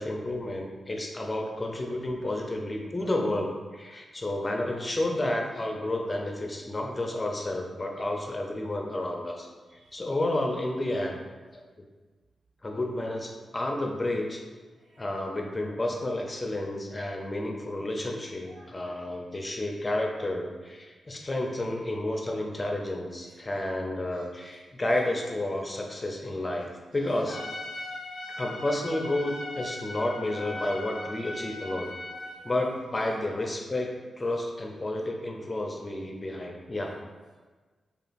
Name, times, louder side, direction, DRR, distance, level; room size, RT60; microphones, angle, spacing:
voice 1, 0.0-9.5 9.9-11.2 11.5-11.6 12.6-14.4 15.0-27.4 28.4-31.9 32.4-33.9 34.2-37.0, left 1 dB, 30° left, 1 dB, 0.6 m, -31 dB
voice 2, 14.7-15.1 16.5-16.7 18.4-19.0 23.2-23.6 24.1-24.6 24.9-25.0 26.4-26.6 26.9-27.2 27.6-28.4 30.4-31.3 31.6-31.9 32.2-33.5, right 1 dB, 75° right, -7 dB, 1.3 m, -55 dB
Trumpet, 27.3-32.5, left 2 dB, 80° left, 0.4 m, -39 dB
4.9 x 2.4 x 2.6 m, 1.3 s
cardioid pair, 55°, 0 cm